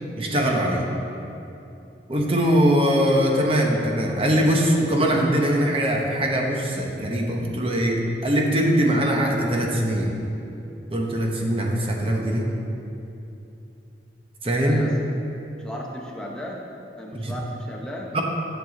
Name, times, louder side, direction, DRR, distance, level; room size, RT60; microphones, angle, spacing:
voice 1, 0.2-0.8 2.1-10.1 10.9-12.5 14.4-14.8 17.1-17.3 18.1-18.2, equal, 30° right, 0 dB, 0.9 m, -22 dB
voice 2, 14.6-14.9 15.6-16.6 17.0-18.1, equal, 5° left, -2 dB, 0.9 m, -35 dB
10.5 x 6.8 x 3.8 m, 2.8 s
head